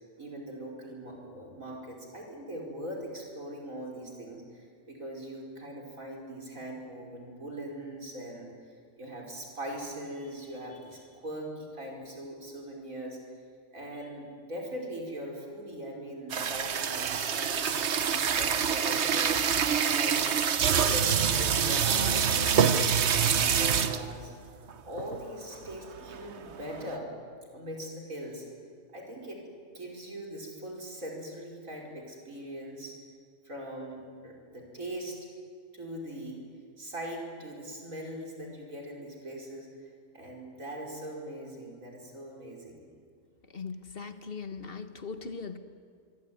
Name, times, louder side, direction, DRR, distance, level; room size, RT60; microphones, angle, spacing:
voice 1, 0.2-13.2 13.7-17.8 18.4-20.2 20.8-24.3 24.9-27.1 27.5-28.5 28.9-29.4 29.7-33.0 33.4-35.2 35.7-36.4 36.8-39.7 40.1-42.9, right 1 dB, 80° right, 0 dB, 5.7 m, -41 dB
sound 1, 16.3-24.1 24.7-24.8 25.0-25.2 25.7-27.0, right 7 dB, 55° right, 1.2 m, -26 dB
voice 2, 43.5-45.6, left 5 dB, 45° left, 9 dB, 1.5 m, -39 dB
24.5 x 24.0 x 9.5 m, 2.1 s
omnidirectional pair, 1.4 m